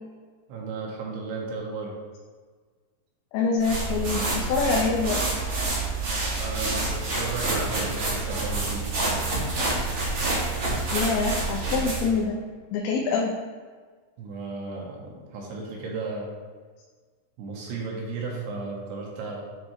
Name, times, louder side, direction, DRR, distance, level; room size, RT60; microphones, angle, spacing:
voice 1, 0.5-2.0 6.4-8.9 14.2-16.3 17.4-19.4, right 3 dB, 80° right, -2 dB, 2.7 m, -34 dB
voice 2, 3.3-5.2 10.9-12.4 12.7-13.3, left 4 dB, 85° left, -1 dB, 2.9 m, -25 dB
sound 1, 3.6-12.2, right 2 dB, 55° right, 1.6 m, -27 dB
9.1 x 3.5 x 3.1 m, 1.5 s
omnidirectional pair, 5.2 m